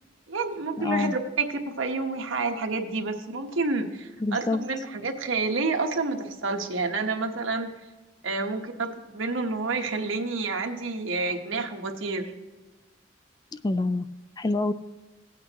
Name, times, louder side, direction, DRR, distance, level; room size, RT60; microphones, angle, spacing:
voice 1, 0.3-7.7 8.2-12.3, right 3 dB, 85° right, 4 dB, 1.1 m, -29 dB
voice 2, 0.8-1.1 4.2-4.6 13.6-14.1 14.4-14.7, left 2 dB, 20° left, 11 dB, 0.3 m, -26 dB
17.0 x 8.5 x 3.0 m, 1.2 s
head